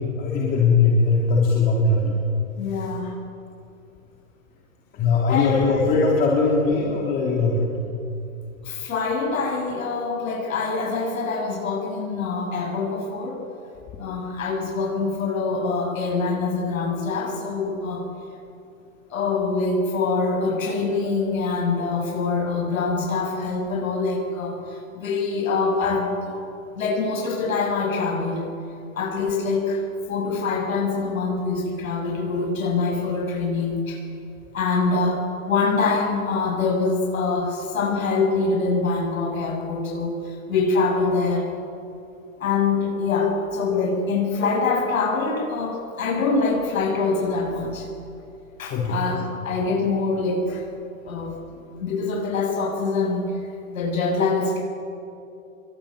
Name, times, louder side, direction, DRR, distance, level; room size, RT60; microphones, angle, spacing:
voice 1, 0.0-2.2 2.7-2.9 4.9-7.6 48.7-49.0, left 4 dB, 20° left, -3 dB, 3.2 m, -20 dB
voice 2, 2.6-3.2 5.3-5.5 8.6-13.4 14.0-18.1 19.1-26.3 26.7-28.4 28.9-34.0 34.5-41.5 42.4-47.9 48.6-50.6 51.0-51.3 51.8-53.4 53.7-54.6, left 4 dB, 80° left, -1 dB, 7.2 m, -24 dB
26.0 x 22.5 x 8.7 m, 2.6 s
hypercardioid pair, 160°, 40 cm